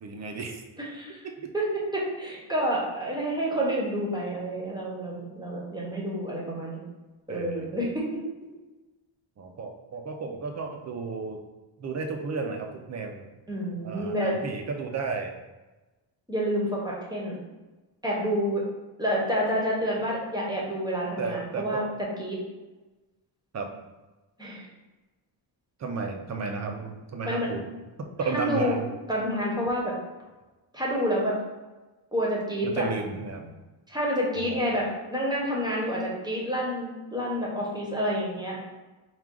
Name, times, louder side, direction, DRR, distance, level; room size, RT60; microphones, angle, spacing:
voice 1, 0.0-0.6 7.3-7.7 9.4-11.4 11.8-13.2 13.8-15.4 21.2-21.8 23.5-23.7 25.8-27.7 28.2-28.8 32.6-33.5 34.4-34.6, right 4 dB, 35° right, 4 dB, 0.5 m, -33 dB
voice 2, 0.8-1.2 1.5-6.8 7.3-8.3 13.5-14.4 16.3-17.4 18.0-18.6 19.0-22.4 24.4-24.7 27.2-27.5 28.3-28.8 29.1-29.9 30.7-31.4 32.1-32.9 33.9-38.6, equal, 10° right, -4 dB, 0.8 m, -28 dB
4.7 x 2.3 x 3.7 m, 1.1 s
wide cardioid pair, 170°, 47 cm